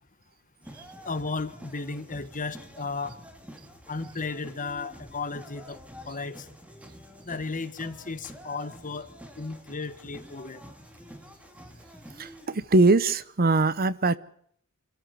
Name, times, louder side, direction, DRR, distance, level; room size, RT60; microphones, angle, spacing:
sound 1, 0.6-12.5, equal, 5° right, 2.7 m, -48 dB
voice 1, 1.0-3.1 3.9-5.8 6.0-6.5 7.2-9.1 9.4-10.6, left 4 dB, 35° left, 1.4 m, -34 dB
voice 2, 12.2-14.2, right 3 dB, 45° right, 0.8 m, -22 dB
27.5 x 13.5 x 7.0 m
head